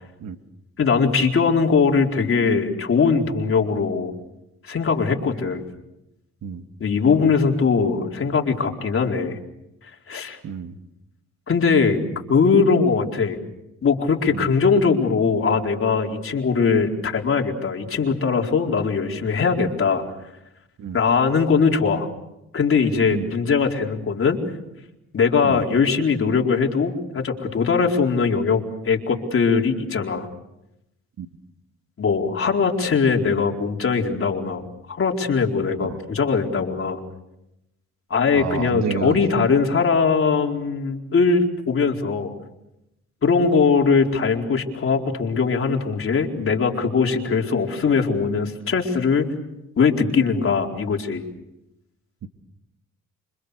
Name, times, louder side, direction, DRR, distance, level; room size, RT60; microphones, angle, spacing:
voice 1, 0.8-4.1 4.6-5.6 6.8-9.4 10.1-10.4 11.5-12.0 12.3-13.4 13.8-20.0 20.9-22.1 22.5-24.4 25.1-30.3 32.0-37.0 38.1-42.3 43.2-49.3 49.8-51.2, left 5 dB, 45° left, 1 dB, 4.5 m, -21 dB
voice 2, 10.4-10.7 14.3-14.5 20.8-21.0 23.1-23.3 25.4-25.6 31.2-31.3 38.3-39.2 52.2-52.3, right 7 dB, 60° right, 7 dB, 2.1 m, -29 dB
28.5 x 26.0 x 6.8 m, 0.88 s
cardioid pair, 90°, 30 cm